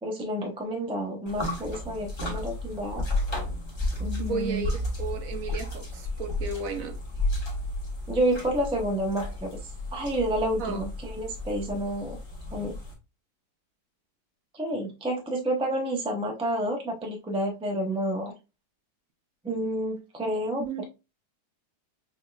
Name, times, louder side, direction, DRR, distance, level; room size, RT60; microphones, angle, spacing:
voice 1, 0.0-3.0 4.0-4.7 8.1-12.2 12.5-12.8 14.5-18.3 19.4-20.8, right 1 dB, 5° right, 0.4 m, -29 dB
sound 1, 1.3-12.9, left 2 dB, 20° left, 1.2 m, -33 dB
voice 2, 4.2-4.7 5.0-7.0 10.6-10.8 20.6-20.9, right 5 dB, 65° right, 1.0 m, -33 dB
5.5 x 3.3 x 2.3 m
omnidirectional pair, 1.8 m